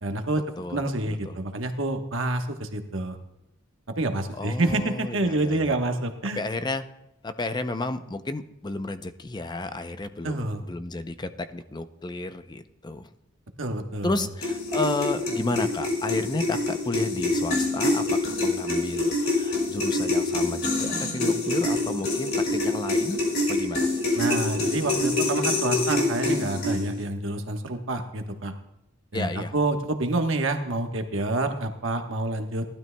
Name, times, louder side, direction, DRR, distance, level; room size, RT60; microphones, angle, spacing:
voice 1, 0.0-0.4 0.7-3.2 3.9-6.4 10.2-10.6 13.6-14.3 24.1-28.5 29.1-32.6, right 2 dB, 65° right, 5 dB, 1.2 m, -28 dB
voice 2, 0.6-1.4 4.4-5.7 6.4-6.8 7.2-13.1 14.0-23.2 23.5-23.9 29.1-29.5, left 2 dB, 20° left, 10 dB, 0.5 m, -32 dB
sound 1, 14.4-27.0, left 2 dB, 50° left, 3.1 m, -26 dB
18.5 x 12.0 x 2.2 m, 0.88 s
head